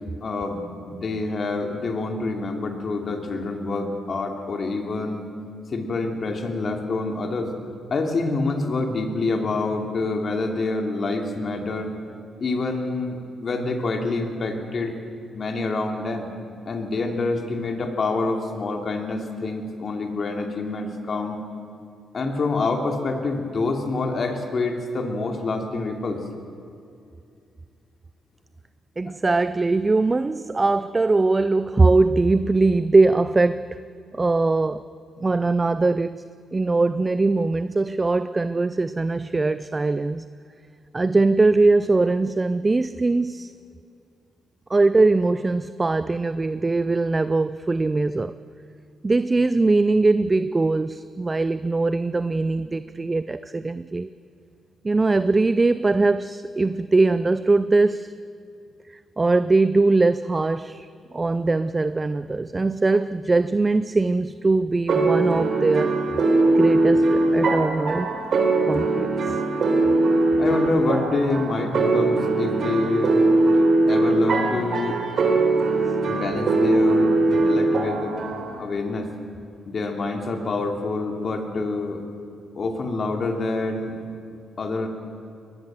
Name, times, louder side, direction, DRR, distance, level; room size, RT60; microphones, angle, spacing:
voice 1, 0.2-5.2 5.7-7.5 7.9-11.9 12.4-14.9 15.3-16.3 16.7-21.4 22.1-26.2 29.0-29.1 70.4-73.1 73.9-75.0 76.1-78.2 78.6-79.1 79.7-82.0 82.5-84.0 84.6-84.9, left 3 dB, 45° left, 4 dB, 3.0 m, -27 dB
voice 2, 29.0-33.8 34.1-34.9 35.2-36.2 36.5-40.3 40.9-43.5 44.7-48.4 49.0-54.1 54.8-58.1 58.9-66.0 66.5-68.1 68.7-69.4 75.9-76.0, right 3 dB, 25° right, 14 dB, 0.5 m, -21 dB
sound 1, 64.9-78.6, right 2 dB, 60° right, 3.9 m, -21 dB
22.5 x 20.0 x 7.7 m, 2.5 s
cardioid pair, 100°, 0 cm